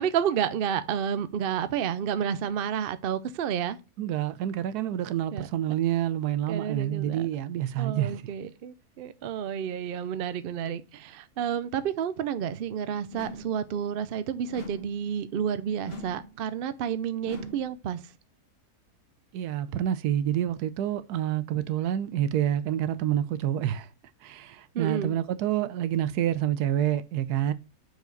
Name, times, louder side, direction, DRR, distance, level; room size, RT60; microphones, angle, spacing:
voice 1, 0.0-3.8 5.3-5.5 6.5-7.3 7.8-18.0 24.7-25.1, right 8 dB, 65° right, 0.5 m, -30 dB
voice 2, 4.0-8.2 19.3-23.9 24.2-27.5, right 11 dB, 85° right, 1.1 m, -28 dB
sound 1, 13.1-13.7 14.5-15.0 15.8-16.4 17.2-17.8, left 1 dB, 40° left, 1.3 m, -41 dB
6.3 x 4.9 x 3.8 m
omnidirectional pair, 1.6 m